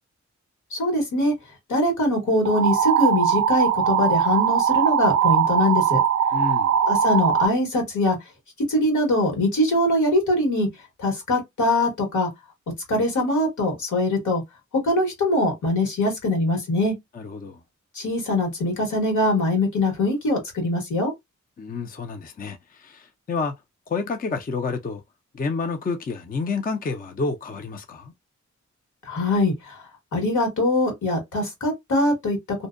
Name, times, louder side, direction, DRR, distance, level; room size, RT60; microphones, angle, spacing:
voice 1, 0.7-1.3 1.7-6.0 6.9-8.2 8.7-10.7 11.0-12.3 12.9-14.4 14.7-16.9 17.9-21.1 29.0-29.8 30.1-32.4, left 1 dB, 80° left, 1.5 m, -22 dB
sound 1, 2.5-7.5, right 8 dB, 55° right, 0.4 m, -20 dB
voice 2, 6.3-6.7 17.1-17.6 21.6-23.5 23.9-25.0 25.3-28.1, left 4 dB, 30° left, 0.5 m, -29 dB
2.6 x 2.1 x 2.4 m
cardioid pair, 65°, 30 cm